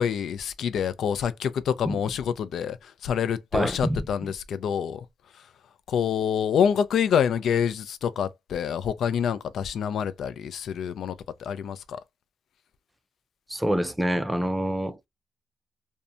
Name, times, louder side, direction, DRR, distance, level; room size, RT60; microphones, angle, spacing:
voice 1, 0.0-5.1 5.3-5.5 5.9-12.0, left 8 dB, 65° left, 0.3 m, -27 dB
voice 2, 3.5-4.1 13.5-15.0, equal, 10° right, 0.4 m, -26 dB
2.7 x 2.1 x 2.4 m
cardioid pair, 90°, 0 cm